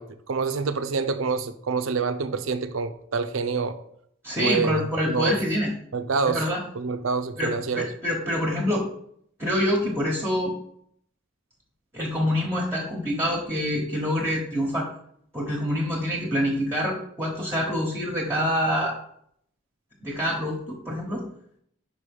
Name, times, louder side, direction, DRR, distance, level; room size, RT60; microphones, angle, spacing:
voice 1, 0.0-3.8 4.4-4.8 5.1-5.4 5.9-6.5 6.7-7.9, right 5 dB, 80° right, 9 dB, 0.6 m, -27 dB
voice 2, 4.2-5.7 6.3-6.6 7.4-8.9 9.4-10.5 11.9-14.9 15.3-19.0 20.0-21.2, equal, 15° right, -3 dB, 1.1 m, -26 dB
5.4 x 4.9 x 5.3 m, 0.67 s
head